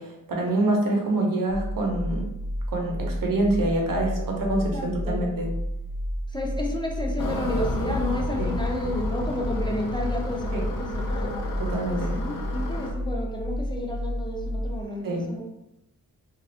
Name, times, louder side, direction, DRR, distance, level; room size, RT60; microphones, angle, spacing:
voice 1, 0.0-2.3 2.7-5.5 8.4-8.5 10.5-10.6 11.6-12.2 15.0-15.3, right 1 dB, 75° right, 0 dB, 0.7 m, -26 dB
sound 1, 1.5-14.8, equal, 45° right, 0.5 m, -31 dB
voice 2, 4.7-5.3 6.3-11.4 12.2-15.4, left 1 dB, 15° left, -1 dB, 0.4 m, -31 dB
sound 2, 7.2-12.9, left 2 dB, 75° left, 0.6 m, -32 dB
3.1 x 2.4 x 2.7 m, 0.88 s
wide cardioid pair, 125°, 33 cm